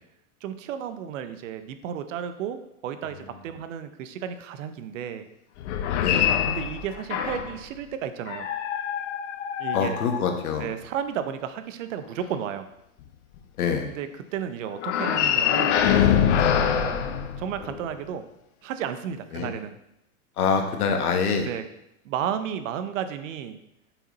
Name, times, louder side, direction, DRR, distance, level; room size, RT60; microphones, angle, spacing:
voice 1, 0.4-5.3 6.5-8.5 9.6-10.0 10.6-12.7 13.8-16.2 16.6-17.0 17.4-18.2 18.6-19.7 21.4-21.6 22.0-23.6, right 9 dB, 60° right, 10 dB, 0.7 m, -33 dB
sound 1, 5.6-7.6 8.3-10.7 14.8-17.9, left 9 dB, 50° left, 0.7 m, -24 dB
voice 2, 5.9-6.2 9.7-10.7 13.6-13.9 19.3-19.5 20.4-21.5, left 6 dB, 75° left, 5 dB, 1.2 m, -25 dB
5.6 x 4.6 x 4.0 m, 0.83 s
hypercardioid pair, 125°, 44 cm